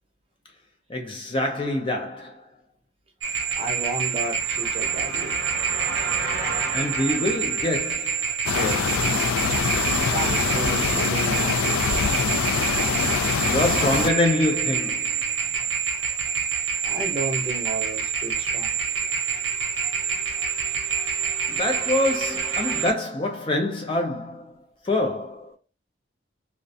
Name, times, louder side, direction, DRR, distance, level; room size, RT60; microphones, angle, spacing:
voice 1, 0.9-2.4 6.7-8.2 8.5-9.0 13.4-15.1 21.5-24.5 24.8-25.5, left 1 dB, 25° left, 0.4 m, -25 dB
sound 1, 3.2-22.9, right 6 dB, 70° right, 0.7 m, -27 dB
voice 2, 3.6-5.4 10.1-11.8 16.8-18.7, right 2 dB, 30° right, 0.6 m, -32 dB
sound 2, 8.4-14.1, left 6 dB, 90° left, 0.4 m, -24 dB
2.4 x 2.1 x 2.6 m
head